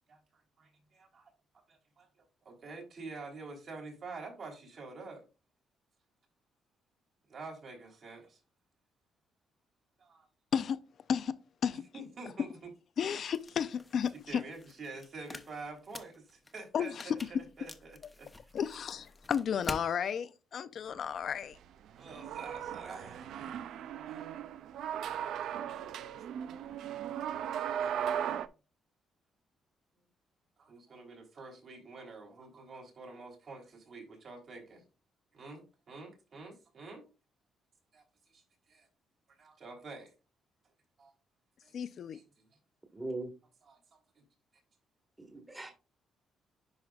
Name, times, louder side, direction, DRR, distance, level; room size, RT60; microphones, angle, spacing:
voice 1, 0.1-1.3 1.7-2.1 2.4-5.2 7.3-8.4 10.0-10.3 11.9-12.7 14.3-18.5 20.9-21.1 21.9-23.8 26.0-26.2 26.4-26.6 30.6-34.8 35.3-37.0 37.9-38.0 38.3-38.9 39.3-40.1 41.0-41.1 41.6-42.5 43.6-44.2, right 3 dB, 55° right, 3.4 m, -48 dB
voice 2, 13.0-14.4 16.7-17.2 18.5-21.6 41.7-42.2, left 7 dB, 60° left, 0.5 m, -33 dB
sound 1, 13.3-19.9, left 2 dB, 15° left, 0.9 m, -48 dB
sound 2, 21.9-28.5, right 9 dB, 80° right, 0.4 m, -37 dB
voice 3, 42.9-43.3 45.2-45.7, right 2 dB, 15° right, 1.6 m, -39 dB
10.5 x 4.9 x 2.4 m
cardioid pair, 90°, 0 cm